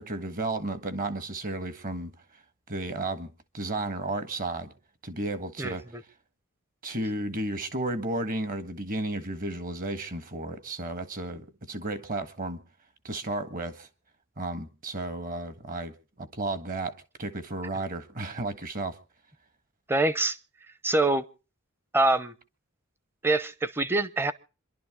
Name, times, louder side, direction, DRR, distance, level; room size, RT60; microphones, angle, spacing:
voice 1, 0.0-2.1 2.7-4.7 5.0-5.8 6.8-12.6 13.0-13.9 14.4-15.9 16.2-16.9 17.2-19.0, right 2 dB, 45° right, 1.5 m, -33 dB
voice 2, 19.9-20.4 20.8-21.3 21.9-22.3 23.2-24.3, right 2 dB, 10° right, 0.7 m, -24 dB
27.0 x 11.5 x 3.6 m
head